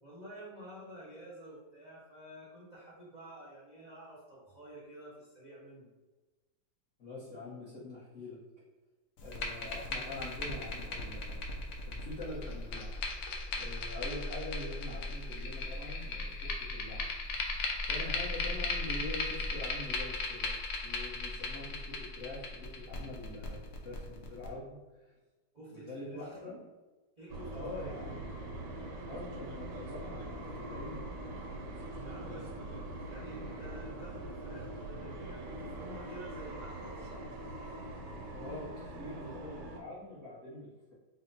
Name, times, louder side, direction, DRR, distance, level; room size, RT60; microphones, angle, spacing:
voice 1, 0.0-5.9 25.5-26.3 27.2-27.9 32.0-32.5 33.1-37.2, right 1 dB, 35° right, -7 dB, 0.6 m, -50 dB
voice 2, 7.0-8.4 9.2-11.4 11.9-12.9 13.5-17.1 17.9-20.5 20.8-25.1 25.7-26.6 27.5-28.3 29.0-31.1 38.3-40.9, left 1 dB, 50° left, -10 dB, 1.0 m, -44 dB
sound 1, 9.2-24.5, left 3 dB, 90° left, 0.7 m, -37 dB
sound 2, 27.3-39.8, right 1 dB, 70° right, 1.2 m, -43 dB
4.2 x 2.1 x 3.9 m, 1.2 s
omnidirectional pair, 2.1 m